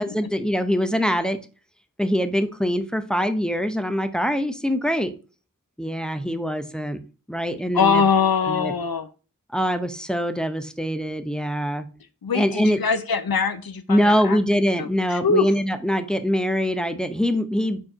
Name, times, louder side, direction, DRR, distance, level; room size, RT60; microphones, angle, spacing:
voice 1, 0.0-1.4 2.0-5.1 5.8-7.0 7.3-8.0 8.5-8.7 9.5-11.9 12.3-12.8 13.9-17.8, equal, ahead, 8 dB, 0.7 m, -23 dB
voice 2, 7.7-9.1 12.2-14.4 14.8-15.5, left 5 dB, 80° left, 11 dB, 0.6 m, -22 dB
4.6 x 4.4 x 4.8 m, 0.35 s
wide cardioid pair, 40°, 35 cm